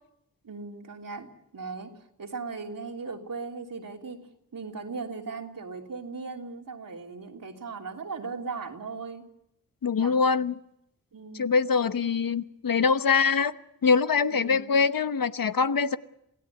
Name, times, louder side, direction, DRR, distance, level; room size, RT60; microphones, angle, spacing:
voice 1, 0.4-1.9 2.2-9.2 10.0-10.2 11.1-11.5 11.9-12.1 14.3-14.7, right 4 dB, 75° right, 3.2 m, -38 dB
voice 2, 9.8-10.5 11.3-13.5 13.8-16.0, left 5 dB, 80° left, 1.0 m, -23 dB
27.5 x 17.0 x 8.3 m
wide cardioid pair, 90°, 34 cm